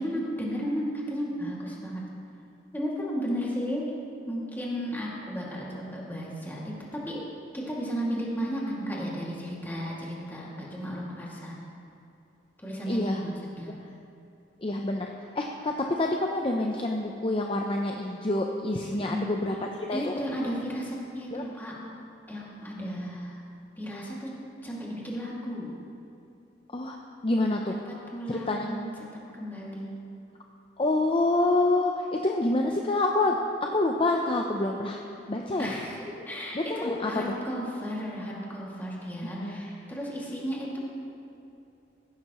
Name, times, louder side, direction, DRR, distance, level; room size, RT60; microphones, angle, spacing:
voice 1, 0.0-2.0 2.7-3.9 4.3-7.2 7.5-11.6 12.6-13.3 13.6-13.7 18.9-19.3 19.9-21.7 22.3-23.4 23.8-24.3 24.6-25.7 27.9-28.8 29.4-30.0 35.6-40.8, equal, 10° left, -5 dB, 2.2 m, -34 dB
voice 2, 12.9-13.2 14.6-20.1 21.3-21.4 26.7-27.0 27.2-27.8 28.3-28.7 30.8-35.0 35.3-35.7 36.5-37.3 39.2-39.6, left 2 dB, 30° left, 1 dB, 0.6 m, -27 dB
15.5 x 11.5 x 3.0 m, 2.7 s
head